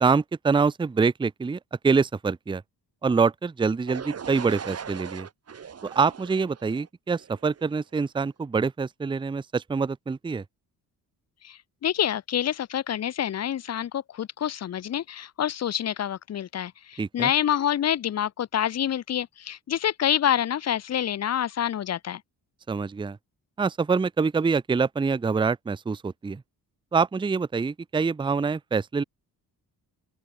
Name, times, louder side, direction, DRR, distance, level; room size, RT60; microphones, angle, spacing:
voice 1, 0.0-2.6 3.0-5.3 5.8-10.4 17.0-17.3 22.7-23.2 23.6-26.4 26.9-29.0, right 5 dB, 15° right, 0.5 m, -25 dB
sound 1, 3.9-7.8, right 7 dB, 40° right, 1.4 m, -40 dB
voice 2, 11.4-22.2, left 10 dB, 40° left, 0.6 m, -27 dB
open air
cardioid pair, 105°, 38 cm